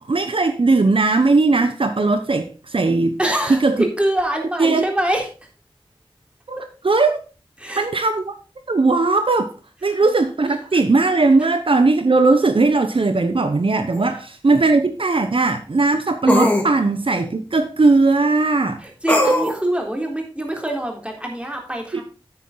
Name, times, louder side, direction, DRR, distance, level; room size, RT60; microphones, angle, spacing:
voice 1, 0.1-3.2 3.5-3.8 4.6-4.8 6.5-6.6 6.8-7.2 7.8-8.3 8.7-9.5 9.8-18.8 19.3-19.4 21.9-22.0, right 3 dB, 65° right, 0.9 m, -18 dB
voice 2, 3.2-5.3 7.6-7.9 9.9-10.1 10.7-10.8 18.8-22.0, right 1 dB, 10° right, 3.6 m, -24 dB
sound 1, 13.9-14.0 16.3-16.7 19.1-19.6, left 1 dB, 15° left, 2.8 m, -18 dB
10.0 x 8.7 x 3.9 m
wide cardioid pair, 60°, 10 cm